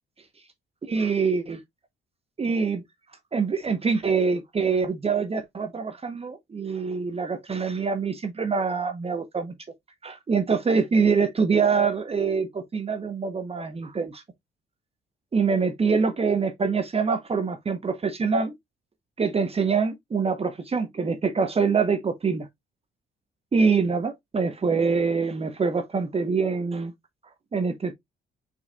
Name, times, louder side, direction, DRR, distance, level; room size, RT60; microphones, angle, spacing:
voice 1, 0.9-1.6 2.4-2.8 3.3-9.5 10.0-14.2 15.3-18.6 19.2-22.5 23.5-26.9 27.5-27.9, right 5 dB, 30° right, 0.8 m, -25 dB
5.5 x 4.2 x 2.2 m
cardioid pair, 90°, 20 cm